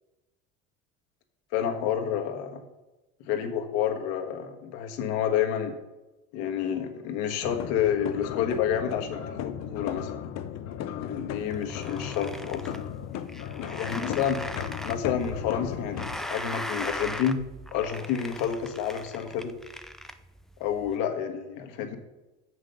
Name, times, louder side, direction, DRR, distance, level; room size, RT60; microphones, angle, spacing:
voice 1, 1.5-2.6 3.2-5.7 6.3-10.1 11.0-12.6 13.6-14.4 14.8-17.4 17.7-19.5 20.6-22.0, left 8 dB, 80° left, 4 dB, 1.5 m, -29 dB
sound 1, 7.4-16.2, left 9 dB, 55° left, 0.8 m, -36 dB
sound 2, 11.4-20.9, equal, ahead, 0.4 m, -39 dB
7.2 x 6.3 x 6.5 m, 1.0 s
supercardioid pair, 105°, 33 cm